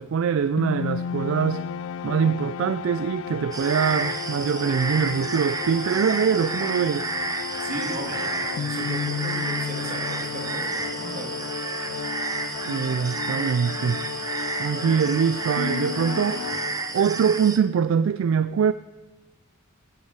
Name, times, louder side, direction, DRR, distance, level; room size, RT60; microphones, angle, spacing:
voice 1, 0.0-1.7 2.0-7.1 12.7-14.0 14.6-16.5 16.9-18.7, right 7 dB, 75° right, 0.3 m, -23 dB
sound 1, 0.6-17.3, left 7 dB, 70° left, 0.3 m, -33 dB
sound 2, 3.5-17.6, right 3 dB, 20° right, 0.7 m, -31 dB
voice 2, 7.6-11.3, right 1 dB, 50° right, 3.0 m, -36 dB
Wind instrument woodwind instrument, 11.6-13.2 13.5-16.7, left 1 dB, 55° left, 4.9 m, -53 dB
15.0 x 9.7 x 4.7 m
head